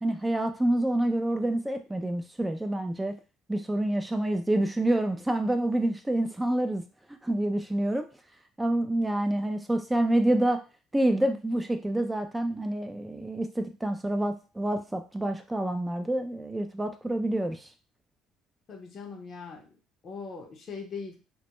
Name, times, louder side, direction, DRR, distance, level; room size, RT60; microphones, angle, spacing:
voice 1, 0.0-3.1 3.5-6.8 7.2-8.0 8.6-10.6 10.9-17.7, right 1 dB, 10° right, 6 dB, 0.4 m, -27 dB
voice 2, 18.7-19.8 20.0-21.2, left 5 dB, 45° left, 2 dB, 0.6 m, -40 dB
2.2 x 2.1 x 2.9 m, 0.33 s
supercardioid pair, 80°, 0 cm